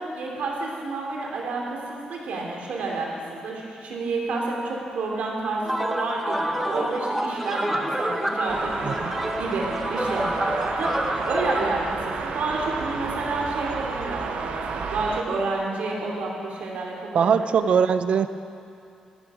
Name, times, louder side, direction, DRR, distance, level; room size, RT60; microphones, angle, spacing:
voice 1, 0.0-17.5, right 3 dB, 85° right, -1 dB, 2.8 m, -30 dB
sound 1, 5.6-11.6, right 1 dB, 5° right, 0.8 m, -28 dB
sound 2, 8.5-15.2, right 5 dB, 70° right, 1.0 m, -32 dB
voice 2, 17.1-18.3, right 7 dB, 55° right, 11 dB, 0.5 m, -21 dB
14.5 x 13.0 x 4.9 m, 2.6 s
wide cardioid pair, 180°, 2 cm